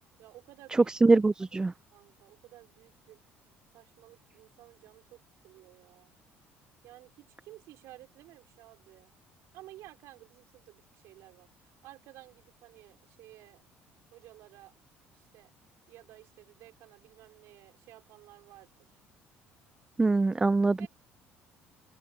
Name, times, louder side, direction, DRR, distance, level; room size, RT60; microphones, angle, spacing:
voice 1, 0.2-0.9 1.4-1.5 1.9-3.2 3.7-6.1 6.8-9.1 9.5-13.6 14.1-14.7 15.1-15.5 15.9-18.7 20.8-20.9, right 16 dB, 75° right, 4.7 m, -54 dB
voice 2, 1.0-1.7 20.0-20.9, right 3 dB, 15° right, 0.4 m, -23 dB
open air
cardioid pair, 100°, 5 cm